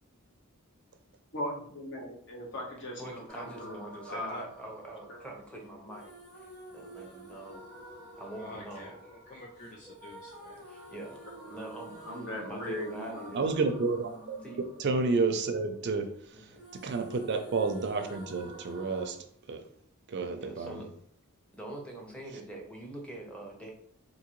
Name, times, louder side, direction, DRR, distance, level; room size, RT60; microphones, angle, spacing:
voice 1, 1.3-3.8 4.1-4.4 5.1-5.2 12.0-13.4, left 1 dB, 55° left, -1 dB, 1.0 m, -38 dB
voice 2, 3.0-7.6 8.1-9.0 10.6-13.5 14.4-14.6 16.3-16.6 17.3-17.4 20.4-20.9 21.5-23.7, right 1 dB, 5° left, -1 dB, 0.7 m, -44 dB
sound 1, 3.3-16.2 16.5-19.1, right 1 dB, 80° left, 1.5 m, -50 dB
voice 3, 8.4-10.6, left 1 dB, 35° left, 0 dB, 0.4 m, -49 dB
voice 4, 13.3-14.4 14.8-16.5 16.8-19.2 19.5-19.6 20.1-20.8, right 4 dB, 50° right, 6 dB, 0.4 m, -30 dB
3.6 x 2.6 x 3.0 m, 0.63 s
head